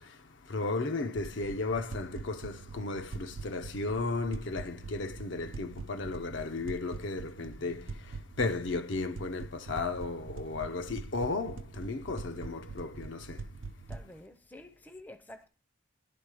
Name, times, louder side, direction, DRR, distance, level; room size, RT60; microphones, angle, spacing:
voice 1, 0.0-13.5, left 3 dB, 70° left, 0.6 m, -35 dB
sound 1, 1.1-14.1, right 4 dB, 85° right, 0.6 m, -44 dB
voice 2, 13.9-15.5, left 1 dB, 10° left, 0.5 m, -49 dB
10.5 x 3.7 x 4.7 m
head